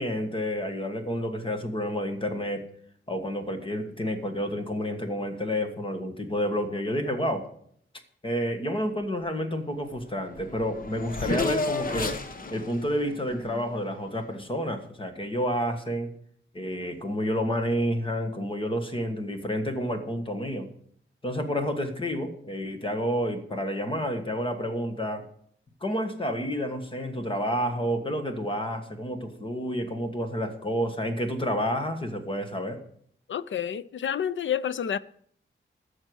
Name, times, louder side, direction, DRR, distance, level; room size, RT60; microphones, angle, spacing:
voice 1, 0.0-2.6 3.1-7.5 8.2-12.2 12.5-16.1 16.5-20.7 21.2-25.2 25.8-32.8, equal, 25° left, 1.4 m, -29 dB
Race car auto racing / Accelerating revving vroom, 10.0-10.1 10.3-14.3, left 3 dB, 40° left, 1.1 m, -32 dB
voice 2, 33.3-35.0, left 8 dB, 65° left, 0.5 m, -29 dB
14.0 x 6.6 x 6.3 m
wide cardioid pair, 180°, 21 cm